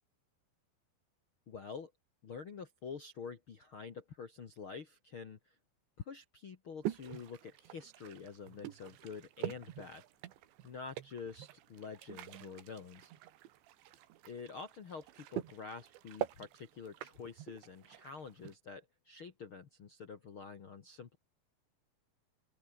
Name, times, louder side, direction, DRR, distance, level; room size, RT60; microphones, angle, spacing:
voice 1, 1.5-1.9 2.2-5.5 6.0-10.0 10.6-13.1 14.2-21.2, left 5 dB, 65° left, 1.2 m, -47 dB
sound 1, 6.8-18.6, right 14 dB, 80° right, 3.8 m, -45 dB
open air
omnidirectional pair, 5.2 m